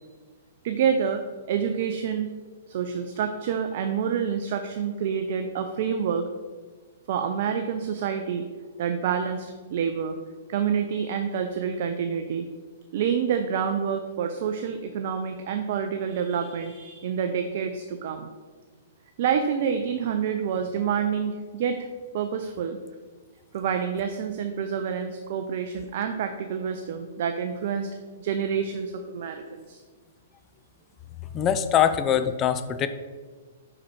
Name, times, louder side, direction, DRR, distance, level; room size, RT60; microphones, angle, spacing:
voice 1, 0.6-1.2 1.5-2.3 2.7-6.2 7.1-8.5 8.8-10.2 10.5-12.5 12.9-18.3 19.2-21.9 22.1-22.8 23.5-27.9 28.2-29.8 31.7-31.8, right 7 dB, 55° right, 6 dB, 0.5 m, -27 dB
voice 2, 31.3-32.9, left 9 dB, 30° left, 10 dB, 0.4 m, -23 dB
5.3 x 4.9 x 4.6 m, 1.4 s
hypercardioid pair, 115°, 0 cm